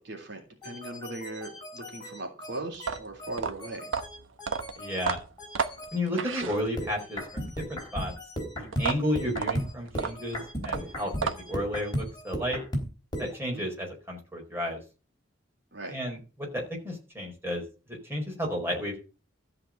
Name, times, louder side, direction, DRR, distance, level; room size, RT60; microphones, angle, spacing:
voice 1, 0.0-3.9 13.5-13.6 15.7-16.0, right 2 dB, 60° right, 2 dB, 3.2 m, -39 dB
sound 1, 0.6-6.0 6.8-13.4, equal, 20° left, 3.8 m, -36 dB
sound 2, 2.7-7.1 8.7-11.7, right 5 dB, 85° right, 1.2 m, -32 dB
voice 2, 4.8-5.2 5.9-8.1 8.5-11.1 11.5-12.6 13.2-14.8 15.9-17.6 17.9-19.0, equal, 10° right, -1 dB, 4.6 m, -32 dB
14.0 x 5.2 x 8.7 m, 0.33 s
head